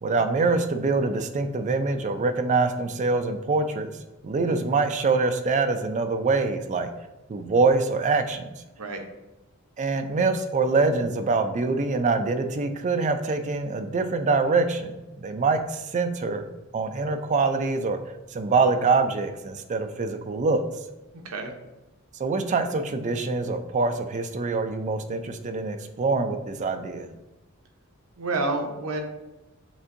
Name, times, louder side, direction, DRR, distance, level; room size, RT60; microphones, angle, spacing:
voice 1, 0.0-3.9 4.2-6.9 7.3-8.5 9.8-14.9 15.2-16.5 16.7-18.0 18.3-20.6 22.2-27.1, right 3 dB, 35° right, 7 dB, 0.4 m, -24 dB
voice 2, 28.2-29.0, right 2 dB, 85° right, 4 dB, 0.7 m, -29 dB
7.1 x 2.6 x 2.6 m, 1.0 s
head